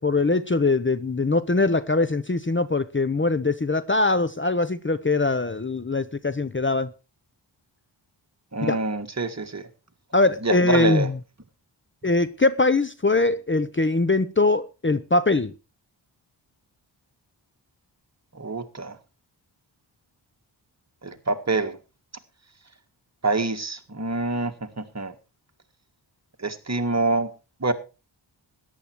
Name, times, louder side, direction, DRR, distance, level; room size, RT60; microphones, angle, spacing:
voice 1, 0.0-6.9 8.6-8.8 10.1-11.1 12.0-15.5, left 3 dB, 25° left, 14 dB, 0.9 m, -22 dB
voice 2, 8.5-9.6 10.4-11.1 18.3-19.0 21.0-21.8 23.2-25.1 26.4-27.3 27.6-27.7, right 3 dB, 35° right, 7 dB, 1.8 m, -26 dB
14.0 x 10.5 x 4.6 m, 0.31 s
cardioid pair, 60°, 47 cm